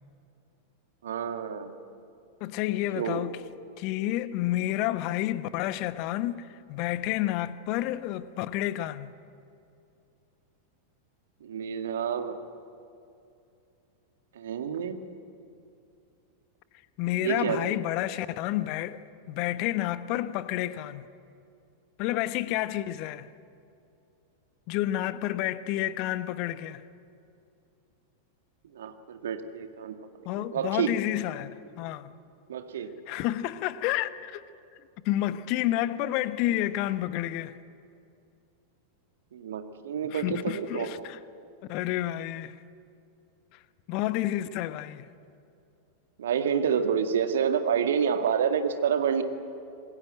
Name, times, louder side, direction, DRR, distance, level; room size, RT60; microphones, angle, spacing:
voice 1, 1.0-1.7 3.0-3.2 11.4-12.4 14.4-15.0 17.2-17.8 28.7-29.9 30.4-30.9 32.5-32.9 39.3-41.1 46.2-49.2, right 7 dB, 60° right, 1.9 m, -28 dB
voice 2, 2.4-3.4 3.8-9.1 17.0-19.0 19.3-21.1 22.0-23.3 24.7-26.8 30.2-32.1 33.1-34.4 35.0-37.5 40.1-41.2 41.7-42.6 43.9-45.1, left 14 dB, 45° left, 1.1 m, -30 dB
27.0 x 20.5 x 9.2 m
figure-of-eight pair, 90°, 0 cm